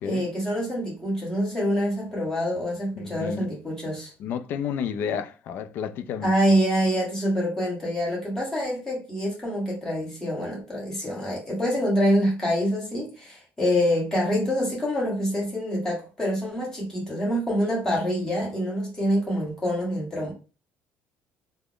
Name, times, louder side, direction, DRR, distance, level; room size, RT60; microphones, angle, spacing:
voice 1, 0.0-4.1 6.2-20.3, equal, 15° left, 1.3 m, -26 dB
voice 2, 3.0-3.5 4.2-6.3, left 7 dB, 55° left, 0.3 m, -31 dB
3.4 x 2.1 x 3.6 m
cardioid pair, 170°, 4 cm